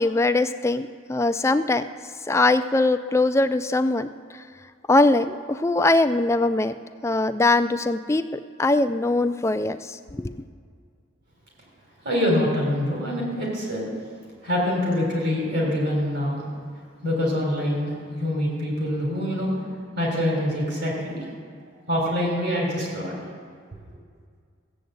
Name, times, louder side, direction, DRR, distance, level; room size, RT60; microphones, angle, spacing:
voice 1, 0.0-1.8 2.3-4.4 4.9-6.7 7.0-10.3, left 2 dB, 15° left, 10 dB, 0.3 m, -22 dB
voice 2, 12.0-13.9 14.4-16.4 17.0-19.5 20.0-21.2 21.9-23.1, left 1 dB, 55° right, -1 dB, 3.7 m, -25 dB
15.0 x 7.8 x 7.9 m, 2.1 s
head